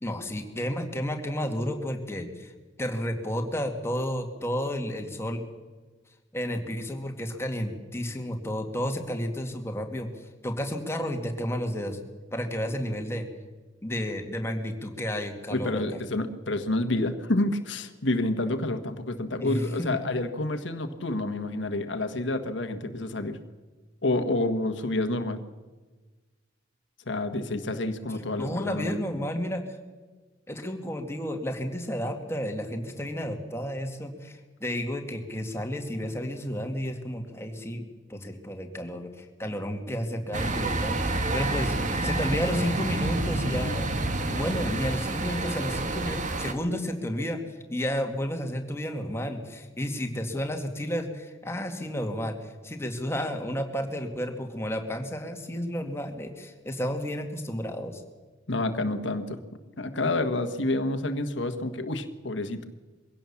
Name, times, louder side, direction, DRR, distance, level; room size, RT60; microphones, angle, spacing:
voice 1, 0.0-2.5 2.8-5.4 6.3-12.0 12.3-13.3 13.8-15.8 19.4-20.0 28.4-29.6 30.5-37.8 38.1-41.8 42.0-43.9 44.3-47.4 47.7-58.0, equal, 15° left, 4 dB, 2.2 m, -32 dB
voice 2, 15.5-23.4 24.0-25.4 27.1-29.0 58.5-59.4 59.8-62.7, left 2 dB, 65° left, 7 dB, 1.5 m, -29 dB
sound 1, 40.3-46.5, right 2 dB, 40° right, 1.5 m, -28 dB
22.5 x 17.0 x 7.2 m, 1.3 s
head